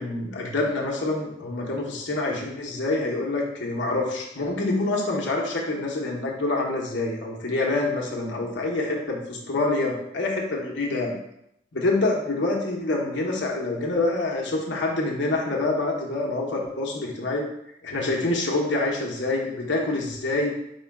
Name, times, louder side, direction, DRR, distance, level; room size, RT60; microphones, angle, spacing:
voice 1, 0.0-11.2 11.7-17.4 17.8-20.5, left 2 dB, 80° left, -2 dB, 1.0 m, -26 dB
4.8 x 2.2 x 4.7 m, 0.79 s
head